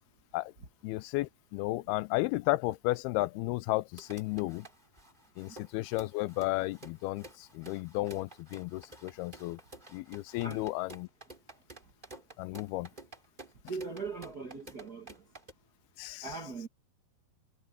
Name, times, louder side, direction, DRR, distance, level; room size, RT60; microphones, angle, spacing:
voice 1, 0.8-4.7 5.4-9.6 9.9-11.1 12.4-12.9 16.0-16.3, left 20 dB, 85° left, 2.4 m, -33 dB
sound 1, 3.9-15.5, right 2 dB, 10° right, 3.4 m, -51 dB
voice 2, 13.7-15.3 16.2-16.7, right 4 dB, 45° right, 1.3 m, -40 dB
omnidirectional pair, 4.6 m